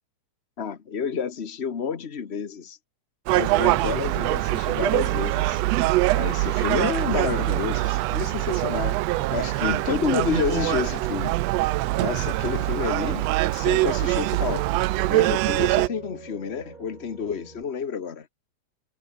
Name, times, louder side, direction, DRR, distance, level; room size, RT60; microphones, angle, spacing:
voice 1, 0.6-2.8 3.3-5.6 6.1-11.4 12.0-14.6 15.1-18.3, left 6 dB, 80° left, 0.5 m, -29 dB
Piano, 3.3-17.6, right 3 dB, 25° right, 1.0 m, -45 dB
Gull seagull, 3.3-15.9, right 19 dB, 80° right, 1.6 m, -23 dB
omnidirectional pair, 3.4 m